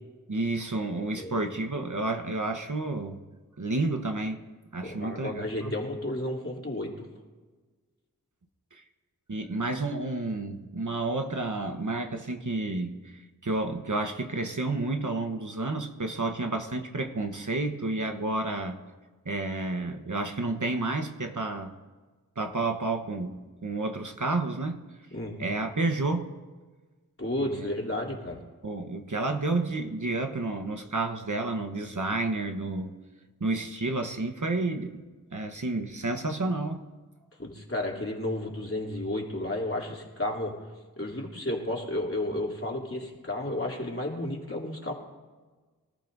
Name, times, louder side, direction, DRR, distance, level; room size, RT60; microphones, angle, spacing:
voice 1, 0.3-3.2 3.6-4.4 4.7-5.7 8.7-8.8 9.3-18.8 19.2-21.7 22.4-24.8 25.4-26.3 27.4-27.7 28.6-32.9 33.4-35.0 35.3-36.8, right 2 dB, 55° right, 4 dB, 1.2 m, -30 dB
voice 2, 4.8-7.1 25.1-25.4 27.2-28.4 37.4-40.5 41.0-44.9, left 1 dB, 35° left, -2 dB, 3.2 m, -32 dB
24.5 x 14.0 x 2.7 m, 1.3 s
wide cardioid pair, 40°, 37 cm